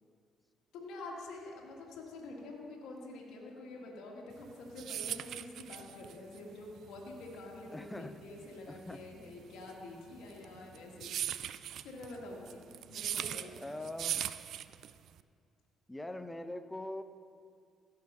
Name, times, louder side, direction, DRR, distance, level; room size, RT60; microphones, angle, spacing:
voice 1, 0.7-11.2 11.4-11.6 11.8-13.7, left 2 dB, 80° left, -2 dB, 1.8 m, -47 dB
sound 1, 4.4-15.2, right 10 dB, 70° right, 0.3 m, -40 dB
voice 2, 7.7-8.2 8.7-9.0 13.6-14.2 15.9-17.0, left 1 dB, 10° left, 10 dB, 0.8 m, -42 dB
16.0 x 5.8 x 5.4 m, 2.2 s
supercardioid pair, 65°, 0 cm